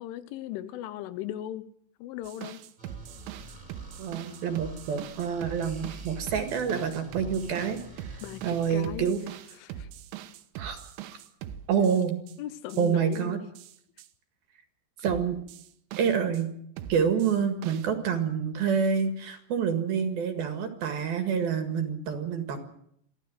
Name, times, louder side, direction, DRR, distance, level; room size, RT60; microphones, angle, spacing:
voice 1, 0.0-1.7 2.0-2.6 8.2-9.1 9.5-9.9 12.4-13.5, left 12 dB, 80° left, 14 dB, 3.4 m, -38 dB
sound 1, 2.2-12.4 12.7-13.2 13.6-14.1 15.1-16.4 16.8-17.9, right 10 dB, 85° right, 3.6 m, -42 dB
sound 2, 2.8-8.8, right 2 dB, 10° right, 2.9 m, -46 dB
voice 2, 4.0-9.2 10.6-10.8 11.7-12.2 12.8-13.4 15.0-15.4 16.0-16.5 16.9-22.6, right 7 dB, 60° right, 7 dB, 3.2 m, -27 dB
24.5 x 15.5 x 7.6 m, 0.69 s
omnidirectional pair, 5.6 m